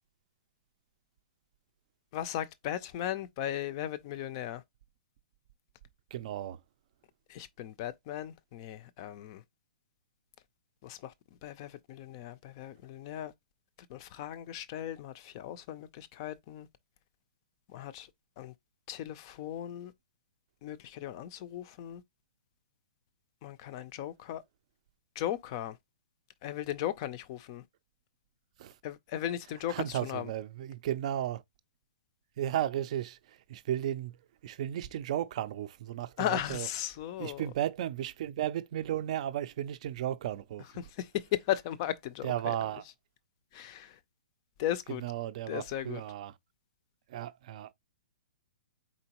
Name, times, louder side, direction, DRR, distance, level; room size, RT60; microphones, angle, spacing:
voice 1, 2.1-4.6 7.3-9.4 10.8-11.1 11.4-13.3 13.9-16.7 17.7-18.1 18.4-18.5 18.9-19.9 20.6-22.0 23.4-24.4 25.2-25.8 26.4-27.6 28.8-30.3 36.2-37.4 40.8-42.5 43.5-44.0 44.6-45.0 45.5-46.0, left 12 dB, 30° left, 0.4 m, -37 dB
voice 2, 6.1-6.6 28.6-28.7 29.7-31.4 32.4-33.2 33.5-34.1 34.4-36.7 37.2-40.6 42.2-42.8 45.0-46.3 47.1-47.7, right 11 dB, 40° right, 0.5 m, -34 dB
4.3 x 3.8 x 2.9 m
hypercardioid pair, 165°, 5 cm